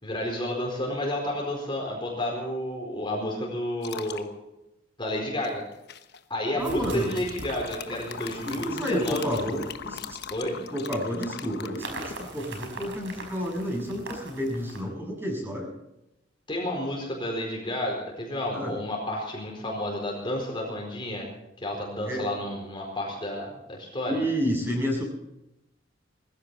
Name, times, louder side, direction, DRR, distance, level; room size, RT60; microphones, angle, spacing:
voice 1, 0.0-4.3 5.0-5.6 6.3-9.5 10.3-10.6 16.5-21.3 21.6-24.2, left 1 dB, 25° left, -1 dB, 4.5 m, -31 dB
sound 1, 3.8-4.3 5.4-6.2 7.0-12.3, left 6 dB, 60° left, 1.1 m, -40 dB
sound 2, 5.2-5.3 6.6-10.4 11.8-14.8, right 2 dB, 70° right, 5.3 m, -42 dB
voice 2, 6.5-7.2 8.5-10.2 10.7-11.9 12.2-15.7 18.5-18.7 22.1-22.3 24.1-25.0, equal, 10° right, -1 dB, 7.3 m, -30 dB
21.0 x 15.5 x 4.3 m, 0.90 s
head